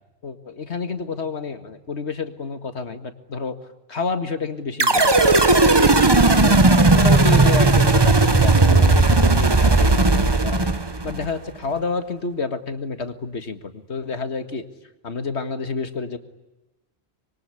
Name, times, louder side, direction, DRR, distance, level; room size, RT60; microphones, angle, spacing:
voice 1, 0.2-3.6 3.9-6.6 6.9-10.7 11.0-14.6 15.0-16.2, left 4 dB, 85° left, 9 dB, 2.2 m, -29 dB
sound 1, 4.8-11.3, right 2 dB, 25° right, 1.2 m, -16 dB
25.5 x 23.0 x 9.9 m, 1.0 s
omnidirectional pair, 1.1 m